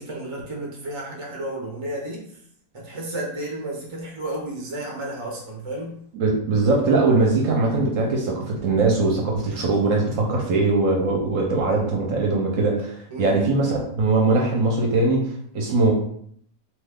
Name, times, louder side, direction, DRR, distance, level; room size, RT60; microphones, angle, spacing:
voice 1, 0.0-2.2 2.7-6.0 13.1-13.4, right 1 dB, 35° right, -2 dB, 0.5 m, -32 dB
voice 2, 6.1-15.3 15.5-15.9, right 3 dB, 65° right, 0 dB, 0.9 m, -21 dB
2.9 x 2.3 x 3.5 m, 0.65 s
omnidirectional pair, 1.6 m